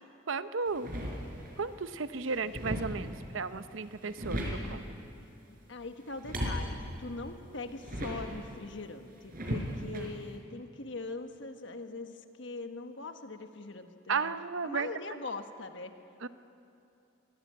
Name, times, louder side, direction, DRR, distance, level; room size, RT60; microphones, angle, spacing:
voice 1, 0.3-0.9 1.6-4.8 9.9-10.1 14.1-14.9 16.2-16.3, right 4 dB, 70° right, 12 dB, 0.7 m, -34 dB
sound 1, 0.7-1.6 2.0-3.3 3.8-4.9 6.0-8.5 9.3-10.1, equal, 45° right, 4.7 m, -37 dB
voice 2, 5.4-14.3 14.6-15.9, left 3 dB, 60° left, 7 dB, 1.4 m, -42 dB
24.5 x 18.0 x 8.8 m, 2.7 s
head